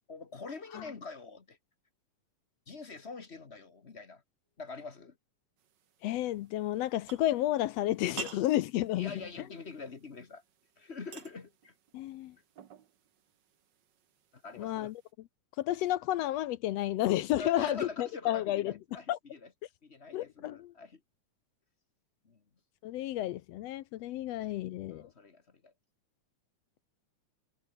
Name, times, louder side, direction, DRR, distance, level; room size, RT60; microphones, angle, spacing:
voice 1, 0.1-1.6 2.7-4.2 4.6-5.1 9.0-10.4 10.8-11.7 14.3-14.9 17.4-19.5 19.8-21.0 22.2-22.4 24.1-24.3 24.9-25.7, left 4 dB, 40° left, 0.9 m, -44 dB
sound 1, 5.6-15.1, right 9 dB, 55° right, 1.3 m, -52 dB
voice 2, 6.0-9.2 11.9-12.3 14.5-15.0 15.6-18.7 19.1-19.2 20.1-20.7 22.8-25.0, left 14 dB, 75° left, 1.6 m, -31 dB
omnidirectional pair, 3.4 m